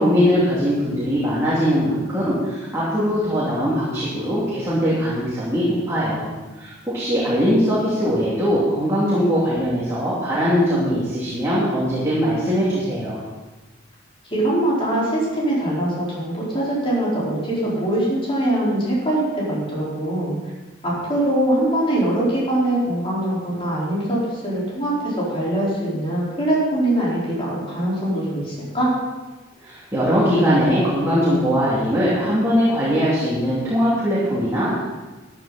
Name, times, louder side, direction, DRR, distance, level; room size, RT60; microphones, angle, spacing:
voice 1, 0.0-6.3 6.6-13.2 29.6-34.8, equal, 15° right, -9 dB, 2.9 m, -21 dB
voice 2, 14.3-20.3 20.8-28.9, right 1 dB, 30° left, -7 dB, 4.8 m, -22 dB
13.5 x 10.5 x 4.3 m, 1.2 s
head